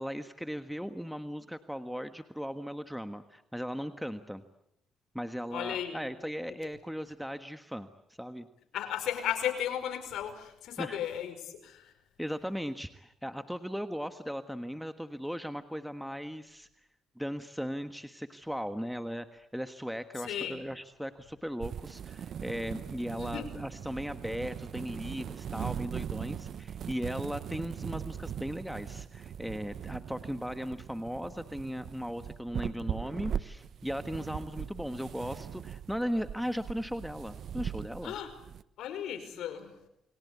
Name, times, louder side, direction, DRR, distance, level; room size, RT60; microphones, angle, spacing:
voice 1, 0.0-4.4 5.1-7.9 8.2-8.5 10.8-11.0 12.2-16.7 17.2-38.1, equal, ahead, 9 dB, 1.4 m, -37 dB
voice 2, 5.5-6.0 8.7-11.9 20.2-20.6 23.2-23.5 38.0-38.3 38.8-39.7, left 10 dB, 80° left, 7 dB, 5.3 m, -35 dB
sound 1, 21.6-38.6, right 8 dB, 65° right, 1.0 m, -40 dB
29.0 x 22.5 x 8.4 m, 0.79 s
cardioid pair, 90°, 0 cm